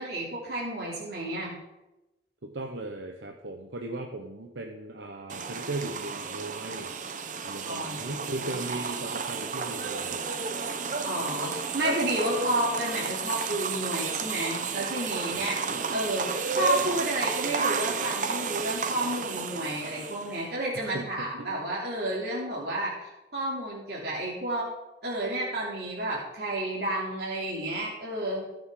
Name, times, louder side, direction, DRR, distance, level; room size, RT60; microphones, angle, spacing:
voice 1, 0.0-1.5 7.6-8.5 11.0-15.6 15.9-24.7 25.0-28.4, right 1 dB, 60° right, -6 dB, 3.0 m, -31 dB
voice 2, 2.4-6.9 7.4-10.3 15.3-15.5 20.7-21.5, right 2 dB, 85° right, 2 dB, 1.0 m, -37 dB
sound 1, 5.3-20.4, right 5 dB, 45° right, 0.8 m, -32 dB
19.5 x 7.0 x 3.9 m, 1.0 s
head